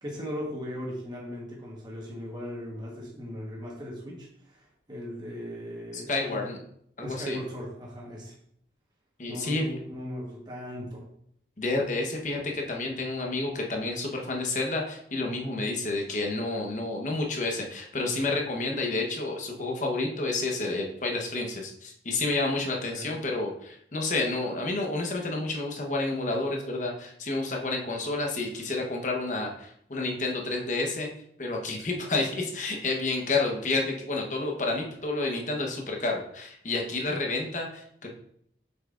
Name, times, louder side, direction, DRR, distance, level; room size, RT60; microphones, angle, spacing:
voice 1, 0.0-6.4 7.0-8.3 9.3-11.0 22.9-23.2, equal, 25° right, -3 dB, 1.2 m, -38 dB
voice 2, 6.1-6.6 7.0-7.4 9.2-9.6 11.6-31.1 31.4-38.1, left 2 dB, 45° left, 1 dB, 1.0 m, -30 dB
6.5 x 5.8 x 2.5 m, 0.70 s
head